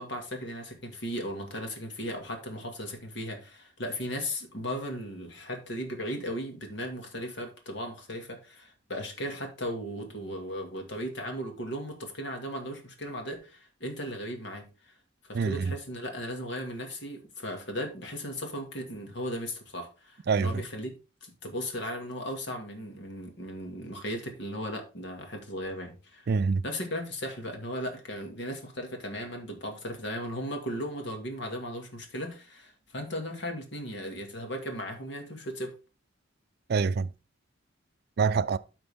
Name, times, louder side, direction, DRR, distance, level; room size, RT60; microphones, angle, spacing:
voice 1, 0.0-14.9 15.3-20.9 21.2-26.3 26.6-35.7, equal, 65° left, 2.1 m, -36 dB
voice 2, 15.3-15.7 20.3-20.6 26.3-26.6 36.7-37.1 38.2-38.6, right 5 dB, 55° right, 0.4 m, -25 dB
12.5 x 4.4 x 3.5 m
head